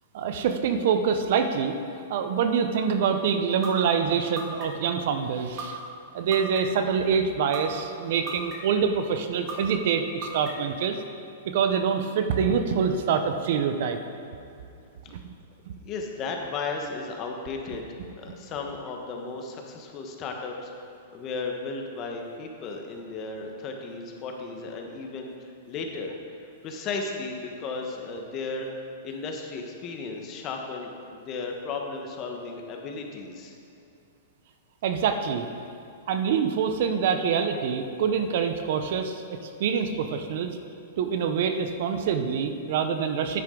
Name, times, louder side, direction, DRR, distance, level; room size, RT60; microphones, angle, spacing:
voice 1, 0.1-1.7 2.1-5.8 6.1-10.9 11.4-14.0 15.1-15.2 34.8-35.4 36.1-40.6 41.0-43.4, right 6 dB, 55° right, 7 dB, 0.7 m, -25 dB
sound 1, 3.6-3.7 4.4-4.9 5.6-5.7 6.3-6.8 7.5-7.6 8.3-8.8 9.5-9.6 10.2-10.7, right 4 dB, 25° right, 1.7 m, -35 dB
voice 2, 15.8-17.9 18.2-20.9 21.1-26.1 26.6-28.7 29.0-33.5, left 4 dB, 30° left, 2 dB, 1.2 m, -35 dB
9.9 x 9.4 x 3.8 m, 2.6 s
hypercardioid pair, 150°, 0 cm